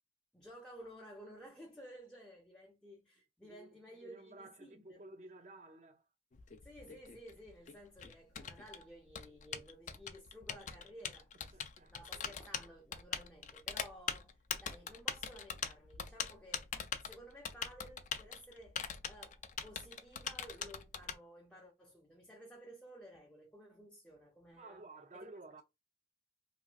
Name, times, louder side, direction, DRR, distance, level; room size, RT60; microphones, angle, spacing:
voice 1, 0.3-5.1 6.6-16.7 17.0-24.8 25.1-25.3, equal, 5° left, 0.6 m, -55 dB
voice 2, 3.4-6.0 11.5-12.3 24.6-25.6, right 2 dB, 40° right, 0.6 m, -54 dB
Typing, 6.3-21.2, left 7 dB, 45° left, 0.4 m, -42 dB
3.1 x 2.5 x 2.4 m
head